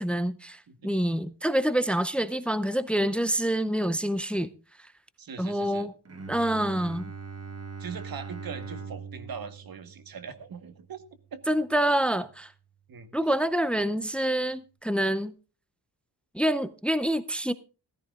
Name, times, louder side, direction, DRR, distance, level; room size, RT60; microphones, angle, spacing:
voice 1, 0.0-4.5 5.4-5.9 6.3-7.0 11.5-12.5 13.1-15.3 16.3-17.5, right 1 dB, 5° left, 0.5 m, -27 dB
voice 2, 5.2-5.9 7.8-11.0 11.3-11.4 12.9-13.1, right 6 dB, 60° right, 1.4 m, -41 dB
Bowed string instrument, 6.1-11.8, right 5 dB, 35° right, 1.4 m, -42 dB
16.5 x 14.5 x 2.4 m
wide cardioid pair, 165°, 40 cm